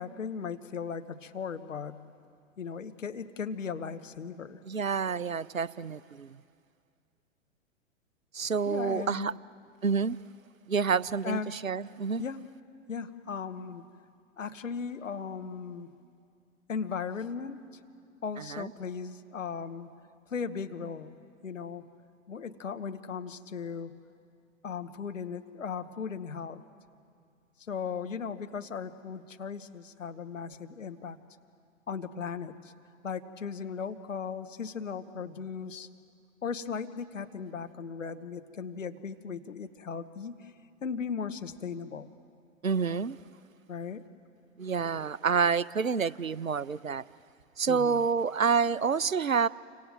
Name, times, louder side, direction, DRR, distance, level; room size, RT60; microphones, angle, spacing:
voice 1, 0.0-2.0 2.6-4.7 8.7-9.4 11.2-11.6 12.2-12.4 12.9-13.8 14.4-15.9 16.7-17.8 18.2-19.9 20.3-21.2 21.4-21.9 22.3-23.9 24.6-26.6 27.7-31.2 31.9-32.7 33.0-35.9 36.4-40.5 40.8-42.1 43.7-44.0 47.7-48.0, left 6 dB, 70° left, 9 dB, 1.4 m, -37 dB
voice 2, 4.7-6.4 8.3-9.3 9.8-10.2 10.7-12.2 18.5-18.7 42.6-43.2 44.6-47.0 47.6-49.5, right 5 dB, 90° right, 21 dB, 0.6 m, -28 dB
29.0 x 26.0 x 7.7 m, 2.3 s
figure-of-eight pair, 105°, 39 cm